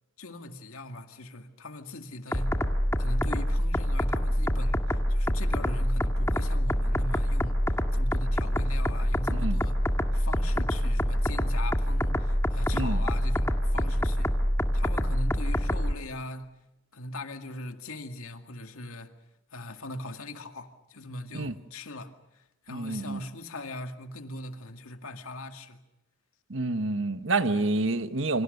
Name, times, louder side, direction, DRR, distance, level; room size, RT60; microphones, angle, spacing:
voice 1, 0.2-2.6 3.0-9.8 10.1-14.4 14.7-16.5 16.9-19.1 19.5-25.8 27.5-27.7, left 1 dB, 85° left, 2.1 m, -40 dB
sound 1, 2.3-15.9, equal, 15° left, 1.7 m, -26 dB
voice 2, 22.7-23.2 26.5-28.4, right 2 dB, 65° right, 1.2 m, -28 dB
28.0 x 25.5 x 6.7 m
head